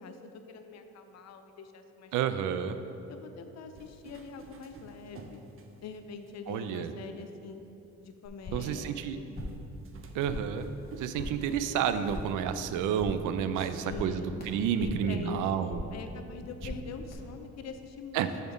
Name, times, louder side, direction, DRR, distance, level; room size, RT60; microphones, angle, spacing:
voice 1, 0.0-2.1 2.5-2.7 3.1-5.4 5.8-7.6 8.0-9.4 13.6-14.4 14.8-18.3, left 5 dB, 60° left, 8 dB, 0.6 m, -44 dB
voice 2, 2.1-2.8 6.5-6.9 8.5-9.2 10.1-10.7 11.0-15.8 18.1-18.3, right 8 dB, 85° right, 11 dB, 0.5 m, -30 dB
sound 1, 3.8-6.3 7.0-7.1 9.4-12.3, right 4 dB, 45° right, 0.7 m, -47 dB
sound 2, 8.3-8.8 9.1-9.7 10.0-10.6 10.9-11.5 11.8-12.5 12.7-13.4 13.6-15.1 15.4-16.1 16.3-17.1, left 1 dB, 30° left, 1.6 m, -41 dB
6.7 x 4.3 x 5.1 m, 2.9 s
cardioid pair, 90°, 30 cm